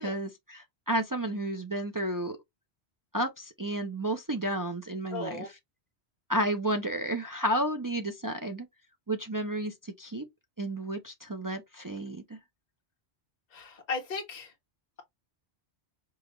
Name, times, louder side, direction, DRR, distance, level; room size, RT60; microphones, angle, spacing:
voice 1, 0.0-2.4 3.1-5.5 6.3-8.7 9.1-10.3 10.6-12.4, right 1 dB, 30° right, 0.4 m, -32 dB
voice 2, 5.1-5.5 13.5-14.5, left 4 dB, 45° left, 1.0 m, -36 dB
5.0 x 2.3 x 3.0 m
omnidirectional pair, 1.1 m